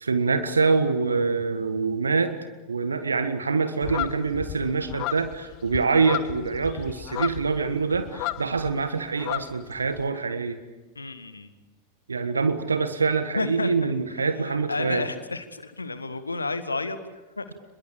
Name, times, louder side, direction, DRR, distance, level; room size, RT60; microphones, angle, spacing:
voice 1, 0.0-2.4 2.7-10.6 12.1-15.0, right 4 dB, 75° right, 10 dB, 1.5 m, -25 dB
sound 1, 3.8-8.8 9.0-10.0, left 16 dB, 40° left, 0.9 m, -34 dB
voice 2, 10.9-11.5 13.3-13.7 14.4-17.4, left 3 dB, 80° left, 11 dB, 1.8 m, -31 dB
29.5 x 22.0 x 7.1 m, 1.1 s
figure-of-eight pair, 90°, 0 cm